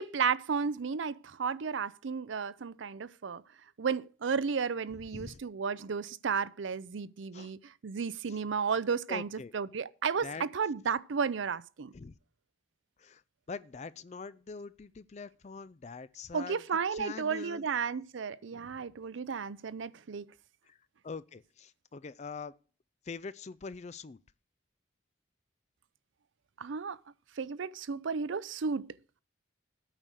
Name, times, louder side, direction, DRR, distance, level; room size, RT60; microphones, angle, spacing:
voice 1, 0.0-3.4 3.8-11.9 16.3-20.3 26.6-27.0 27.4-28.9, right 6 dB, 75° right, 0.5 m, -33 dB
voice 2, 9.1-9.5 10.2-10.5 11.9-12.2 13.0-13.2 13.5-16.6 16.9-17.7 20.7-20.8 21.0-22.5 23.1-24.2, left 4 dB, 35° left, 0.4 m, -43 dB
9.0 x 6.2 x 6.6 m
head